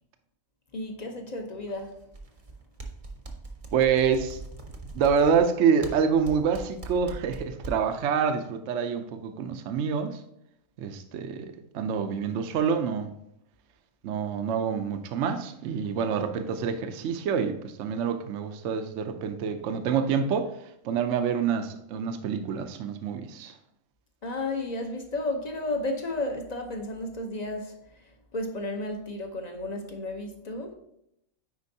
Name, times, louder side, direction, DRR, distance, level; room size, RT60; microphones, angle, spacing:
voice 1, 0.7-2.0 24.2-27.7 28.3-30.7, left 2 dB, 35° left, 3 dB, 0.8 m, -33 dB
sound 1, 1.7-2.5 2.8-8.0, right 3 dB, 30° right, 0.7 m, -41 dB
voice 2, 3.7-4.4 4.9-10.2 10.8-13.1 14.0-20.5 20.8-23.5, right 6 dB, 65° right, 7 dB, 0.9 m, -27 dB
9.6 x 4.4 x 2.7 m, 0.77 s
omnidirectional pair, 1.4 m